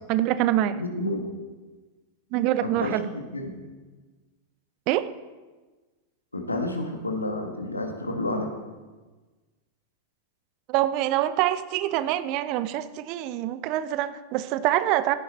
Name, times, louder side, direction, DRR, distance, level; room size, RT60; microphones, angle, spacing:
voice 1, 0.1-0.8 2.3-3.1 4.9-5.0 10.7-15.2, right 13 dB, 40° right, 14 dB, 0.6 m, -25 dB
voice 2, 0.7-1.3 2.6-3.6 6.3-8.5, left 1 dB, 80° left, 3 dB, 1.7 m, -30 dB
14.5 x 10.5 x 4.3 m, 1.3 s
figure-of-eight pair, 90°, 0 cm